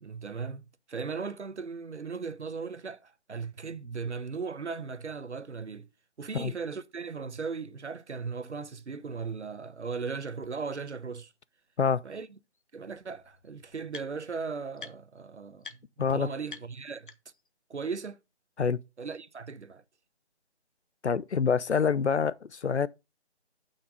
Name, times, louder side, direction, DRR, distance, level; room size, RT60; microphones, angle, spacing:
voice 1, 0.0-5.9 6.2-11.3 12.0-12.4 12.7-17.1 17.7-18.2 19.0-19.8, right 5 dB, 85° right, 1.0 m, -37 dB
sound 1, 10.4-10.5 11.1-11.2 12.5-12.6 12.9-14.4 14.8-15.2 15.6-15.8 16.1-16.2 16.5-17.5, left 4 dB, 50° left, 1.0 m, -47 dB
voice 2, 21.0-22.9, left 6 dB, 75° left, 0.7 m, -26 dB
7.2 x 6.0 x 5.1 m
figure-of-eight pair, 170°, 34 cm